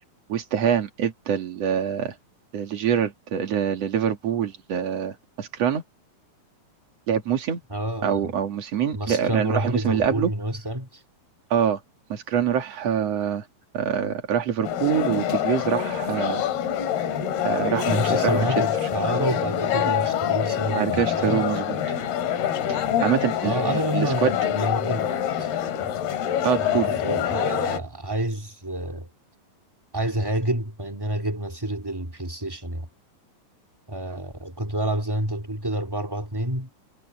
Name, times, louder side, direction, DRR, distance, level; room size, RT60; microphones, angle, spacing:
voice 1, 0.3-2.1 2.5-5.8 7.1-7.6 8.0-10.3 11.5-11.8 12.1-13.4 13.7-16.4 17.4-18.5 20.7-21.8 22.7-24.3 26.4-26.9, right 8 dB, 45° right, 3.0 m, -25 dB
voice 2, 7.7-8.3 8.9-11.0 17.9-21.5 23.4-25.1 25.4-25.5 25.8-26.0 26.6-29.1 29.9-32.9 33.9-36.7, right 1 dB, 5° right, 2.1 m, -28 dB
sound 1, 14.6-27.8, left 10 dB, 75° left, 4.0 m, -25 dB
omnidirectional pair, 4.6 m